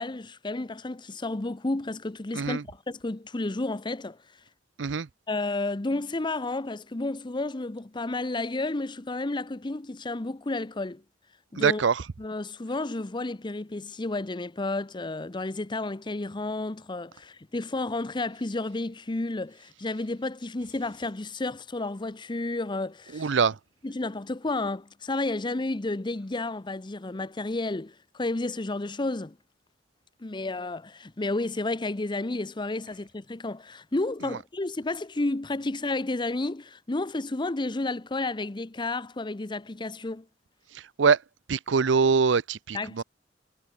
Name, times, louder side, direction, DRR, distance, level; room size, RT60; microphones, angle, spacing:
voice 1, 0.0-4.2 5.3-11.0 11.5-11.8 12.2-23.3 23.8-29.4 30.2-40.3 42.7-43.0, left 2 dB, 25° left, 0.7 m, -31 dB
voice 2, 11.6-12.0 23.1-23.6 41.0-41.2 41.5-43.0, right 5 dB, 85° right, 0.6 m, -23 dB
head